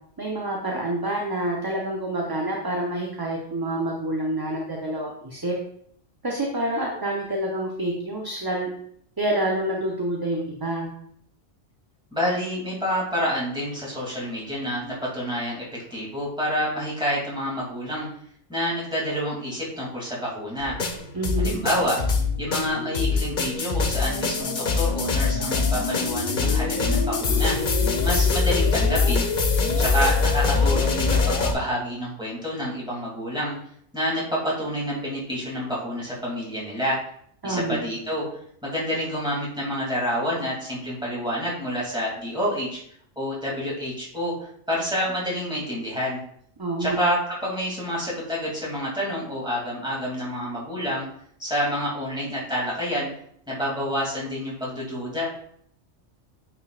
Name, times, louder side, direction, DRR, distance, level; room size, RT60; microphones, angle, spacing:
voice 1, 0.2-5.5 6.2-8.7 9.2-10.9 21.1-21.6 37.4-37.8 46.6-47.0, right 1 dB, 25° right, -2 dB, 0.7 m, -27 dB
voice 2, 12.1-15.6 15.9-18.1 18.5-20.7 21.4-22.0 22.4-27.6 28.0-29.3 29.8-33.5 33.9-37.0 37.4-38.3 38.6-42.8 43.2-44.3 44.7-46.2 46.8-51.0 51.4-53.1 53.5-55.3, equal, 5° right, -6 dB, 2.5 m, -28 dB
sound 1, 20.6-31.5, left 4 dB, 50° left, 0.8 m, -23 dB
8.9 x 4.6 x 2.4 m, 0.67 s
omnidirectional pair, 1.2 m